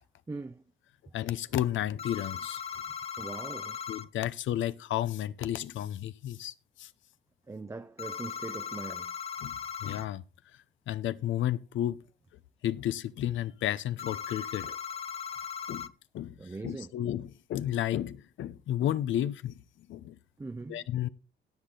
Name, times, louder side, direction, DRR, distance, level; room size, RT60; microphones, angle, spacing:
voice 1, 0.3-0.6 3.2-3.8 7.5-9.1 16.4-16.9 20.4-20.9, right 3 dB, 15° right, 0.6 m, -41 dB
voice 2, 1.1-2.6 3.9-6.9 9.4-9.5 9.8-10.2 10.9-12.0 12.6-14.8 15.7-16.4 16.6-19.6 19.9-20.2 20.7-21.1, left 12 dB, 75° left, 0.8 m, -32 dB
sound 1, 2.0-4.1 8.0-10.1 14.0-15.9, left 7 dB, 30° left, 0.6 m, -38 dB
17.5 x 6.5 x 3.9 m
cardioid pair, 90°, 20 cm